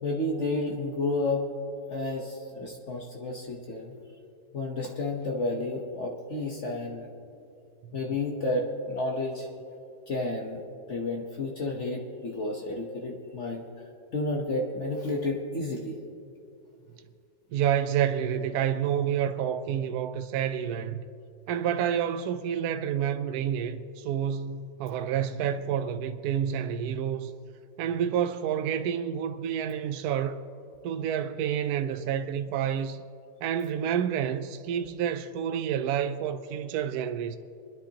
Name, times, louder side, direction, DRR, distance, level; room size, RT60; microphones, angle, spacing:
voice 1, 0.0-1.4 1.9-3.9 4.5-7.1 7.9-9.5 10.1-10.6 10.9-13.6 14.1-15.9, left 2 dB, 50° left, 1.3 m, -31 dB
voice 2, 17.5-21.1 21.5-27.3 27.8-30.4 30.8-33.0 33.4-37.4, right 9 dB, 75° right, 1.0 m, -29 dB
27.5 x 10.5 x 2.9 m
omnidirectional pair, 1.8 m